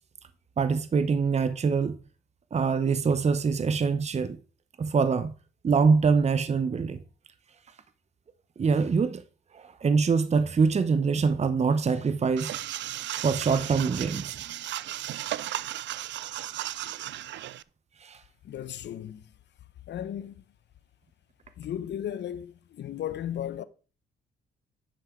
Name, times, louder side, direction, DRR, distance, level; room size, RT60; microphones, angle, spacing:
voice 1, 0.6-2.0 2.5-4.4 4.8-5.3 5.6-7.0 8.6-9.2 9.5-12.5 13.2-14.4 15.1-15.2 18.0-18.2, right 5 dB, 35° right, 0.9 m, -24 dB
sound 1, 12.4-17.6, right 13 dB, 65° right, 0.4 m, -35 dB
voice 2, 18.4-19.2 19.9-20.4 21.6-23.6, left 10 dB, 60° left, 0.9 m, -35 dB
10.5 x 5.9 x 4.5 m
cardioid pair, 90°, 20 cm